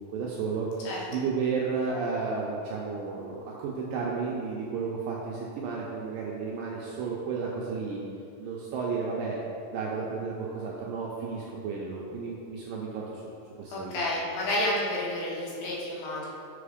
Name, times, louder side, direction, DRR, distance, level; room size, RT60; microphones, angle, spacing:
voice 1, 0.0-8.1 8.4-9.4 9.7-13.2 13.6-14.0, right 5 dB, 80° right, -3 dB, 2.1 m, -32 dB
voice 2, 13.7-16.3, left 1 dB, 70° left, -5 dB, 3.0 m, -30 dB
5.8 x 5.4 x 5.0 m, 2.6 s
omnidirectional pair, 4.6 m